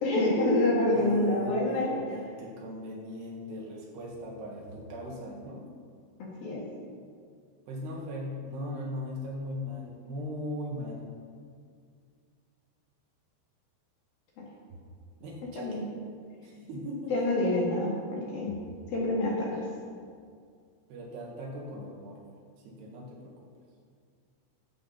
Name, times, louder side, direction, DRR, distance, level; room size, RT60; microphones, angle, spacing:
voice 1, 0.0-1.9 6.2-6.6 14.4-14.5 15.6-15.8 17.1-18.5 18.9-19.6, left 1 dB, 55° left, -4 dB, 3.5 m, -27 dB
voice 2, 0.8-5.7 7.7-11.1 15.2-15.8 16.4-17.3 20.9-22.2 22.7-23.5, left 1 dB, 65° right, -2 dB, 3.4 m, -39 dB
16.0 x 8.5 x 5.7 m, 2.1 s
omnidirectional pair, 5.6 m